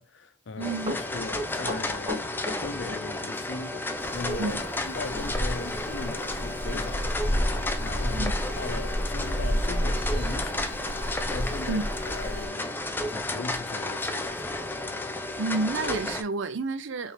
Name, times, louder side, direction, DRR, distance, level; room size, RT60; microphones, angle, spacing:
voice 1, 0.0-8.3 8.6-14.6, left 3 dB, 80° left, 0.6 m, -39 dB
sound 1, 0.6-16.2, left 2 dB, 10° left, 0.5 m, -32 dB
voice 2, 0.6-1.0 4.4-4.6 8.1-8.3 11.7-11.9 15.4-17.1, right 3 dB, 90° right, 0.5 m, -30 dB
Run, 0.8-3.5 3.7-3.9 5.1-5.3 5.7-5.8 6.3-6.4 6.7-6.9 7.4-7.5, left 2 dB, 25° right, 2.1 m, -36 dB
sound 2, 4.0-12.5, equal, 45° right, 1.1 m, -31 dB
4.2 x 3.6 x 3.3 m
head